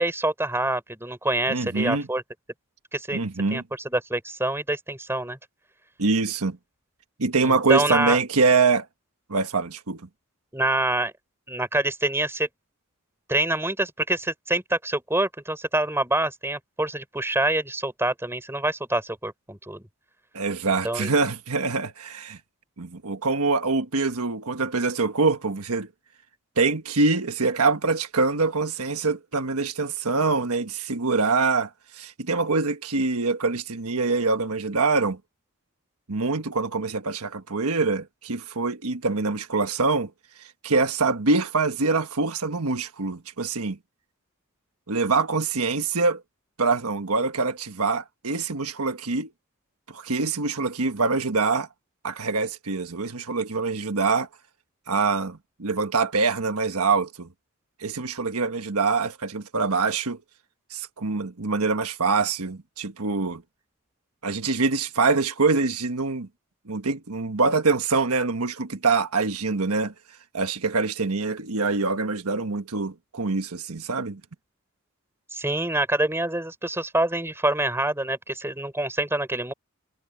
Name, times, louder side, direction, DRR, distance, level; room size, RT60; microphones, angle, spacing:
voice 1, 0.0-2.2 2.9-3.2 3.5-5.4 7.4-8.2 10.5-11.1 11.5-12.5 13.3-19.8 20.8-21.1 75.3-79.5, right 1 dB, 10° right, 4.6 m, -26 dB
voice 2, 1.5-2.1 3.1-3.6 6.0-6.6 7.2-8.9 9.3-10.0 20.3-22.4 22.8-25.9 26.6-35.2 36.1-40.1 40.4-43.8 44.9-46.2 46.6-49.3 49.9-51.7 52.0-54.3 54.9-57.3 57.8-60.2 60.7-63.4 64.2-66.3 66.7-69.9 70.3-74.2, right 4 dB, 90° right, 1.4 m, -24 dB
head